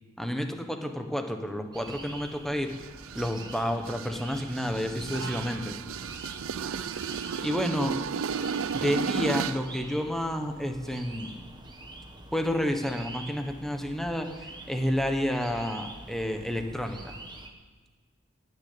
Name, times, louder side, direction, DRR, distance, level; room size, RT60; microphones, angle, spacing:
voice 1, 0.2-2.7 3.1-5.8 7.4-7.9 8.7-11.4 12.3-17.2, equal, ahead, 5 dB, 1.2 m, -30 dB
sound 1, 1.7-17.5, right 2 dB, 20° right, 1.3 m, -46 dB
sound 2, 2.7-9.7, right 6 dB, 65° right, 0.5 m, -34 dB
18.0 x 6.6 x 8.6 m, 1.4 s
head